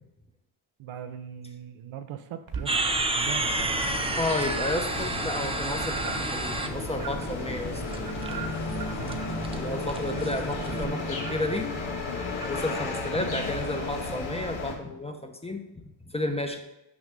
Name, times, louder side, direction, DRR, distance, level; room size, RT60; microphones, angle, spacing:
voice 1, 0.8-3.5 9.0-9.2, right 9 dB, 70° right, 9 dB, 0.7 m, -40 dB
sound 1, 2.5-3.3 3.7-13.5, right 5 dB, 45° right, 1.2 m, -42 dB
sound 2, 2.7-10.9, right 2 dB, 10° right, 0.7 m, -31 dB
sound 3, 3.2-14.7, left 3 dB, 70° left, 1.6 m, -34 dB
voice 2, 4.2-7.8 9.5-11.7 12.5-15.6 16.0-16.6, left 1 dB, 10° left, 5 dB, 1.0 m, -32 dB
6.2 x 5.2 x 3.7 m, 0.91 s
supercardioid pair, 50°, 49 cm